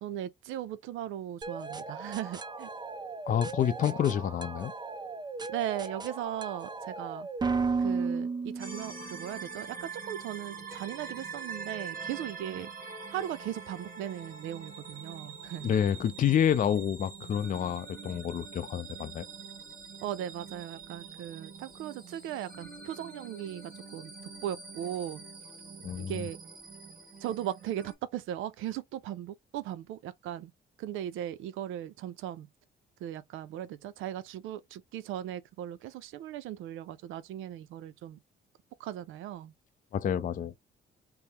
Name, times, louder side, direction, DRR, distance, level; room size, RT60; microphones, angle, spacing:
voice 1, 0.0-2.7 5.5-7.3 7.8-12.7 13.1-15.7 20.0-24.1 24.4-25.2 26.0-26.4 27.2-30.5 30.8-32.5 33.0-38.2 38.8-39.5, right 11 dB, 85° right, 0.4 m, -38 dB
sound 1, 1.4-9.2, right 4 dB, 20° right, 0.5 m, -35 dB
voice 2, 3.3-4.7 15.6-19.3 25.8-26.2 39.9-40.5, left 9 dB, 40° left, 0.4 m, -28 dB
sound 2, 8.6-27.9, right 5 dB, 45° right, 2.2 m, -45 dB
4.0 x 2.0 x 3.5 m
cardioid pair, 90°, 20 cm